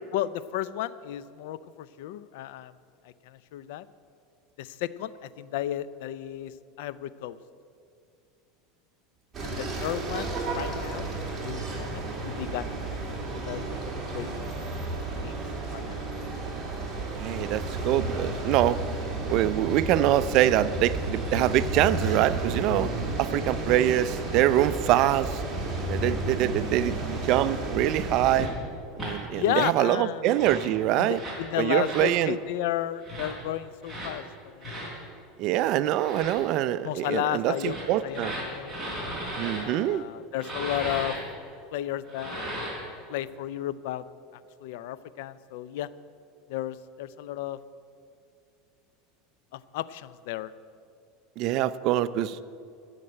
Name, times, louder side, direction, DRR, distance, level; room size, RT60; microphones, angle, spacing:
voice 1, 0.1-2.7 3.0-3.8 4.6-7.4 9.4-12.8 13.2-13.8 14.1-14.4 15.2-15.4 15.7-16.0 29.3-30.3 31.0-34.3 34.5-34.8 35.7-35.9 36.8-37.8 38.0-38.8 39.4-41.2 41.7-42.5 43.1-44.0 44.3-45.9 46.5-47.6 49.5-50.5, left 12 dB, 70° left, 16 dB, 0.5 m, -33 dB
sound 1, 9.3-28.5, right 2 dB, 15° right, 2.6 m, -32 dB
voice 2, 17.1-18.8 19.3-22.9 23.2-25.4 25.8-27.0 27.2-28.5 29.0-31.2 31.6-32.4 35.4-38.4 39.4-40.0 51.4-52.4, right 13 dB, 50° right, 15 dB, 0.4 m, -24 dB
sound 2, 28.4-28.5 29.0-29.2 30.2-30.7 31.1-31.4 31.8-32.1 33.0-33.3 33.8-34.1 34.6-34.9 35.9-36.4 37.5-39.6 40.4-41.2 42.1-42.9, equal, ahead, 3.7 m, -36 dB
13.5 x 6.6 x 8.7 m, 2.4 s
supercardioid pair, 140°, 0 cm